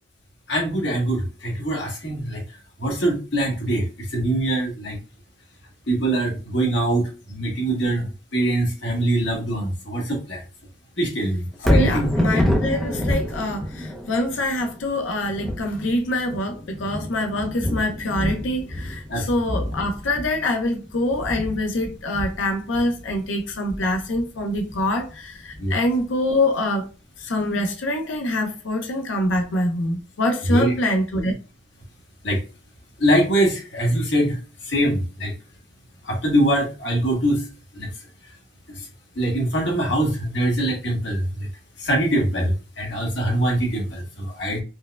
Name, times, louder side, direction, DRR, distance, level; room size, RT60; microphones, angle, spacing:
voice 1, 0.5-2.4 2.8-3.9 4.1-5.0 5.9-8.1 8.3-10.4 11.0-12.1 19.1-19.2 25.6-25.8 30.5-30.7 32.2-32.4 33.0-34.4 34.7-35.3 36.0-37.4 37.8-37.9 39.2-41.5 41.8-44.6, right 1 dB, 70° left, 1.2 m, -23 dB
Thunder, 11.5-25.7 26.2-26.3, equal, ahead, 0.5 m, -27 dB
voice 2, 11.7-26.9 27.2-31.3, left 1 dB, 85° left, 0.6 m, -25 dB
4.4 x 2.1 x 2.2 m
head